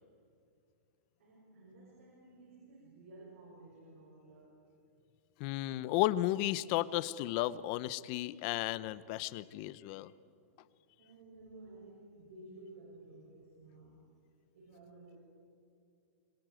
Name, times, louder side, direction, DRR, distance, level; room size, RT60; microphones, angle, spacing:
voice 1, 1.2-4.7 8.8-8.9 11.0-14.1 14.5-15.2, right 2 dB, 65° right, -3 dB, 6.4 m, -54 dB
voice 2, 5.4-10.1, left 15 dB, 35° left, 18 dB, 0.7 m, -34 dB
26.0 x 21.5 x 9.2 m, 2.4 s
supercardioid pair, 160°, 8 cm